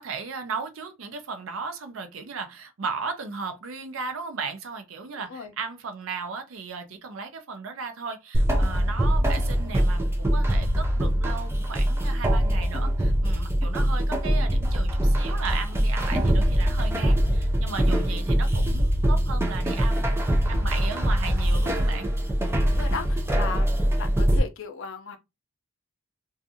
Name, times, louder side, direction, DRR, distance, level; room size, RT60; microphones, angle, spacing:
voice 1, 0.0-20.2 20.5-22.1, right 5 dB, 65° right, 0.5 m, -36 dB
sound 1, 8.3-24.4, equal, 10° right, 0.4 m, -23 dB
voice 2, 22.5-25.2, left 4 dB, 60° left, 0.5 m, -37 dB
2.5 x 2.4 x 2.6 m
head